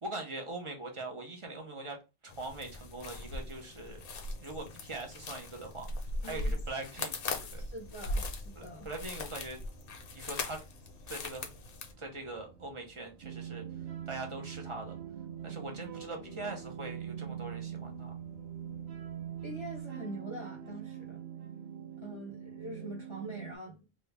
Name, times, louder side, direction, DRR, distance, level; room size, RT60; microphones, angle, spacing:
voice 1, 0.0-2.0 2.2-4.0 4.4-5.9 6.2-7.7 8.6-9.6 10.1-10.6 11.1-11.5 12.0-13.6 14.1-14.9 15.4-18.1, right 2 dB, 35° right, 0.8 m, -42 dB
sound 1, 2.3-11.9, left 2 dB, 65° left, 0.8 m, -39 dB
sound 2, 2.7-19.8, right 3 dB, 90° right, 1.2 m, -59 dB
voice 2, 6.2-6.5 7.6-8.9 19.4-21.2 22.0-23.8, right 1 dB, 30° left, 0.7 m, -44 dB
sound 3, 13.2-23.6, right 9 dB, 70° right, 0.8 m, -43 dB
3.2 x 2.5 x 3.2 m
omnidirectional pair, 1.0 m